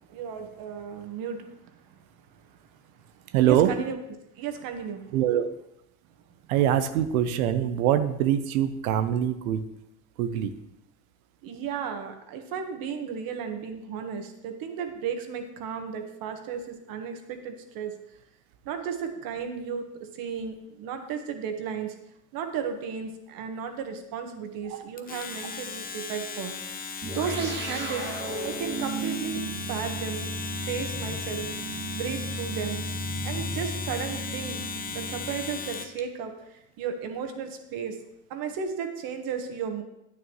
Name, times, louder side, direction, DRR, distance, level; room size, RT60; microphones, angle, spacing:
voice 1, 0.1-1.5 3.4-4.0 4.4-5.0 11.4-17.9 18.6-21.9 22.3-26.5 27.1-28.1 28.4-29.4 29.7-30.3 30.7-31.5 31.9-32.8 33.2-38.0 38.3-39.8, right 7 dB, 55° right, 6 dB, 1.5 m, -34 dB
voice 2, 3.3-3.8 5.1-5.5 6.5-9.7 10.2-10.6, right 10 dB, 85° right, 10 dB, 0.8 m, -23 dB
Domestic sounds home sounds, 25.0-36.0, left 5 dB, 20° left, 0.7 m, -37 dB
sound 1, 27.0-35.8, right 2 dB, 25° right, 2.0 m, -35 dB
9.6 x 8.8 x 3.1 m, 0.85 s
supercardioid pair, 105°, 41 cm